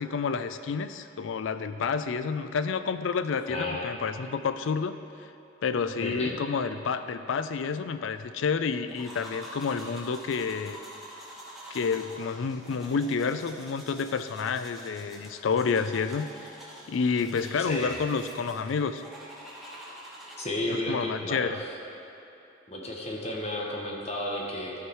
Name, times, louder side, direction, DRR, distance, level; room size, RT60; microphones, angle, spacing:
voice 1, 0.0-4.9 5.6-10.8 11.7-16.5 16.9-19.0 20.7-21.6, left 5 dB, 90° left, 11 dB, 0.4 m, -29 dB
voice 2, 3.5-3.8 6.0-6.3 17.7-17.9 20.4-21.5 22.7-24.7, left 1 dB, 35° left, -2 dB, 1.0 m, -32 dB
sound 1, 8.9-20.8, right 1 dB, ahead, 1.1 m, -46 dB
13.0 x 4.7 x 4.6 m, 2.9 s
head